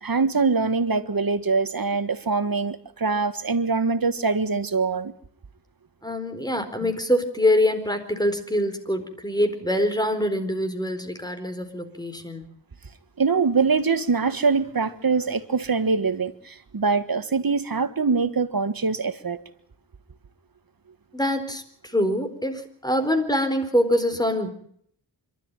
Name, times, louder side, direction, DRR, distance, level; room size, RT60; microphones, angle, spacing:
voice 1, 0.0-5.1 13.2-19.4, right 4 dB, 55° right, 11 dB, 1.7 m, -23 dB
voice 2, 6.0-12.5 21.1-24.5, left 1 dB, 10° left, 7 dB, 4.3 m, -24 dB
26.5 x 13.0 x 9.0 m, 0.67 s
cardioid pair, 50°, 42 cm